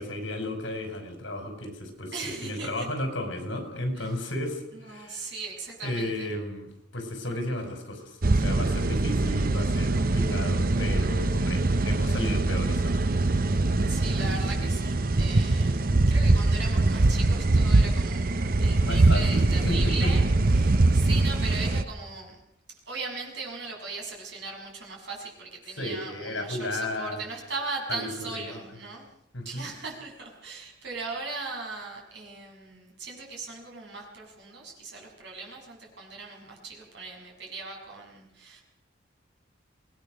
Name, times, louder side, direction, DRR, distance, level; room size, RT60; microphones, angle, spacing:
voice 1, 0.0-5.3 5.8-13.1 18.8-20.1 25.8-27.2 27.9-28.1 28.3-28.6 29.3-29.7, left 1 dB, 75° left, 5 dB, 5.4 m, -34 dB
voice 2, 2.1-2.9 3.9-4.2 4.7-6.3 13.8-18.3 18.6-22.4 22.8-29.1 29.4-38.6, right 3 dB, 65° right, 0 dB, 6.8 m, -38 dB
sound 1, 8.2-21.8, right 2 dB, 50° right, 0.8 m, -23 dB
24.5 x 19.0 x 6.4 m, 0.82 s
head